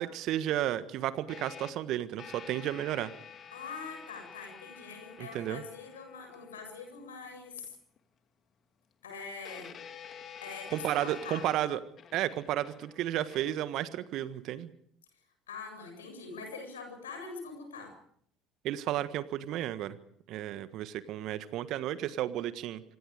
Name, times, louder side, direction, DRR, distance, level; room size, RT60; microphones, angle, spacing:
voice 1, 0.0-3.1 5.2-5.6 10.7-11.8 12.1-14.7 18.6-20.0 20.3-22.8, right 12 dB, 55° right, 13 dB, 1.4 m, -33 dB
sound 1, 1.3-7.4 8.0-8.1 9.4-13.6, left 7 dB, 45° left, 2.6 m, -49 dB
voice 2, 3.5-7.7 9.0-9.8 10.4-11.7 15.5-18.0, left 4 dB, 80° left, 6 dB, 7.5 m, -44 dB
26.5 x 25.5 x 5.0 m, 0.64 s
figure-of-eight pair, 60°, 0 cm